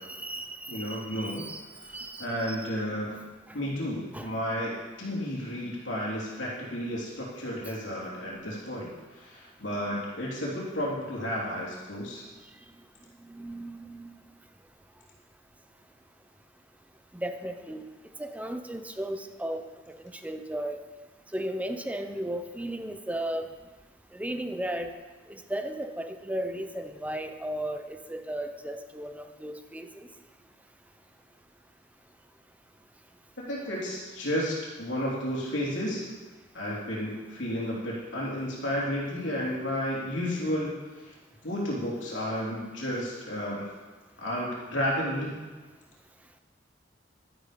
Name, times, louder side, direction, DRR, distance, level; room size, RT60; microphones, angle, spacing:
voice 1, 0.0-1.6 1.9-2.9 4.1-4.3 13.3-14.1 17.1-17.8 18.2-20.0 20.2-20.8 21.3-23.5 24.1-24.9 25.3-30.1 33.6-33.7, right 1 dB, 10° right, 7 dB, 0.7 m, -35 dB
voice 2, 0.7-1.5 1.8-1.9 2.2-3.2 3.5-12.3 33.5-36.1 36.5-40.7 41.0-41.1 41.4-43.7 44.2-45.4, equal, 80° left, -5 dB, 3.3 m, -32 dB
12.5 x 11.0 x 5.1 m, 1.3 s
head